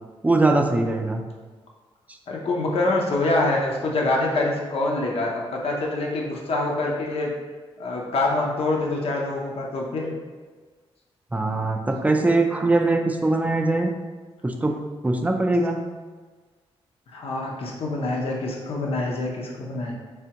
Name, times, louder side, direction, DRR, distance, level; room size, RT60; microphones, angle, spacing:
voice 1, 0.2-1.2 11.3-13.9 14.4-15.8, right 2 dB, 15° right, 4 dB, 0.4 m, -22 dB
voice 2, 2.3-7.3 7.8-10.1 17.1-19.9, left 2 dB, 65° left, -1 dB, 0.7 m, -25 dB
3.4 x 3.4 x 2.9 m, 1.4 s
cardioid pair, 75°, 11 cm